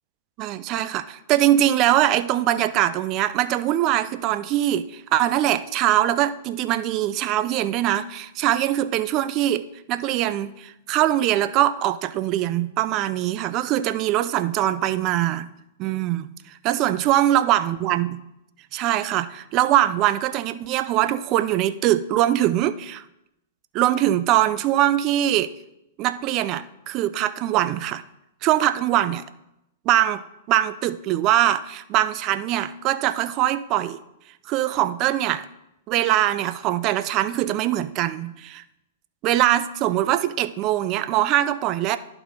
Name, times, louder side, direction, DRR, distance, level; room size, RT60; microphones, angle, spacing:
voice 1, 0.4-15.5 15.8-18.2 18.7-23.0 23.7-25.5 26.0-28.0 28.4-29.2 29.9-34.0 34.5-35.5 35.9-38.6 39.2-42.0, right 13 dB, 40° right, 13 dB, 0.4 m, -22 dB
11.0 x 4.5 x 4.0 m, 0.86 s
hypercardioid pair, 120°, 0 cm